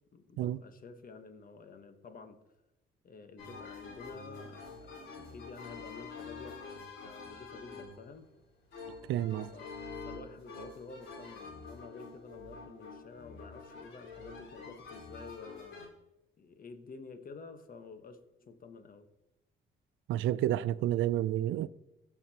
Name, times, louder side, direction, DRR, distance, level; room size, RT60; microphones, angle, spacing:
voice 1, 0.1-2.4 3.0-6.6 7.0-8.3 9.5-9.7 10.0-15.8 16.4-19.1, left 4 dB, 45° left, 1.2 m, -50 dB
sound 1, 3.4-15.9, left 4 dB, 70° left, 3.8 m, -47 dB
voice 2, 9.1-9.5 20.1-21.7, right 12 dB, 80° right, 0.4 m, -30 dB
15.5 x 6.0 x 2.9 m
cardioid pair, 90°, 20 cm